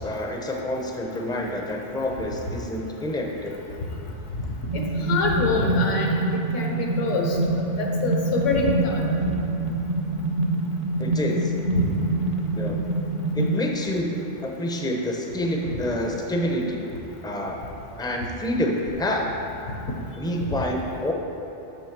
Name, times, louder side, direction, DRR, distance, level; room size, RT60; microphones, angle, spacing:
voice 1, 0.0-3.6 11.0-11.5 12.6-12.8 13.3-16.8 17.2-17.6 18.0-19.3 20.2-21.1, left 1 dB, 5° left, 0 dB, 0.3 m, -28 dB
voice 2, 4.7-6.2 6.5-9.0 11.7-11.8, left 2 dB, 75° left, 0 dB, 1.3 m, -25 dB
sound 1, 4.7-13.6, right 2 dB, 50° right, 0.7 m, -25 dB
6.6 x 6.1 x 5.9 m, 3.0 s
omnidirectional pair, 1.3 m